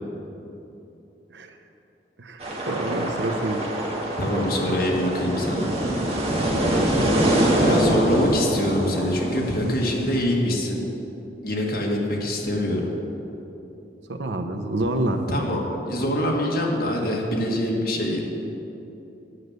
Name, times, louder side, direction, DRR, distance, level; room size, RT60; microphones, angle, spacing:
voice 1, 2.2-3.6 14.1-15.3, right 1 dB, 90° right, 6 dB, 0.8 m, -27 dB
sound 1, 2.4-10.2, right 1 dB, 35° right, 1.5 m, -24 dB
voice 2, 4.2-5.7 6.7-7.0 7.6-10.9 11.4-12.9 15.3-18.4, left 1 dB, 55° left, -1 dB, 1.7 m, -24 dB
9.6 x 6.7 x 8.1 m, 2.9 s
head